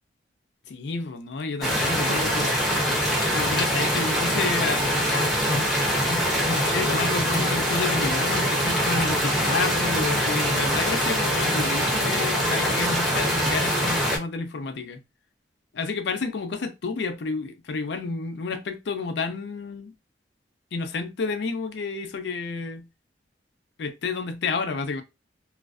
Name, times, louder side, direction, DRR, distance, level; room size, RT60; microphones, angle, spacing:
voice 1, 0.7-2.5 3.3-15.0 15.7-19.9 20.7-22.9 23.8-25.0, left 4 dB, 75° left, 0.4 m, -30 dB
sound 1, 1.6-14.2, equal, ahead, 0.6 m, -24 dB
2.4 x 2.1 x 2.3 m
head